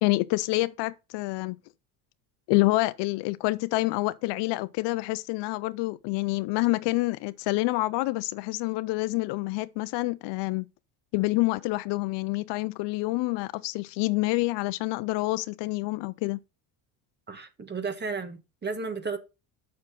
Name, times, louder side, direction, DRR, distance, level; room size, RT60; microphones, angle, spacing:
voice 1, 0.0-1.6 2.5-10.7 11.1-16.4, left 21 dB, 65° left, 0.6 m, -27 dB
voice 2, 17.3-19.2, right 4 dB, 25° right, 1.4 m, -33 dB
7.2 x 6.3 x 4.2 m
supercardioid pair, 100°, 45 cm